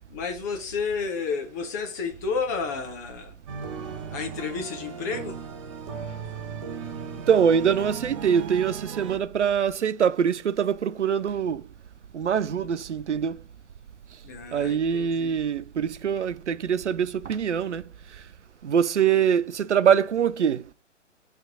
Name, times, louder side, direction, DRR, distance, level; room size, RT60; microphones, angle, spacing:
voice 1, 0.1-3.3 4.1-5.4 14.2-15.4, left 5 dB, 15° left, 0.6 m, -31 dB
sound 1, 3.5-9.2, right 6 dB, 25° right, 0.9 m, -37 dB
voice 2, 7.3-11.6 12.1-13.4 14.5-17.8 18.6-20.6, right 8 dB, 65° right, 0.5 m, -23 dB
10.5 x 3.5 x 4.8 m
figure-of-eight pair, 125°, 38 cm